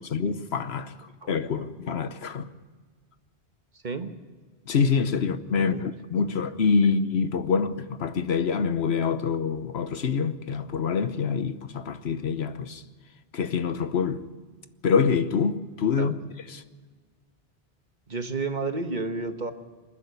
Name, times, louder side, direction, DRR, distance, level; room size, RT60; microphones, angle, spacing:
voice 1, 0.0-2.5 4.7-12.8 13.3-14.2 14.8-16.1 16.5-16.6, left 5 dB, 75° left, 1.2 m, -26 dB
voice 2, 1.2-1.6 3.7-4.1 5.6-5.8 6.2-6.4 16.0-16.2 18.1-19.5, right 3 dB, 45° right, 1.4 m, -32 dB
27.5 x 10.0 x 9.6 m
omnidirectional pair, 1.1 m